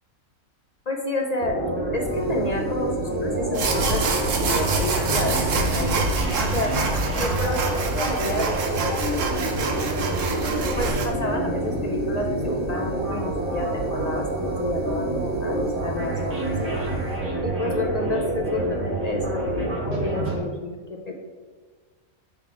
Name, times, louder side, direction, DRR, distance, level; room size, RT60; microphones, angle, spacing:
voice 1, 0.9-1.6 1.9-4.0 4.4-5.4 5.7-6.1 6.4-6.7 7.1-9.4 10.8-16.7 17.4-21.1, left 2 dB, 50° left, 2 dB, 0.5 m, -30 dB
sound 1, 1.4-20.4, right 2 dB, 50° right, 2.5 m, -27 dB
sound 2, 2.0-17.2, equal, 5° left, 1.1 m, -40 dB
sound 3, 3.5-11.1, right 3 dB, 65° right, 1.2 m, -26 dB
5.7 x 4.3 x 4.6 m, 1.4 s
omnidirectional pair, 1.5 m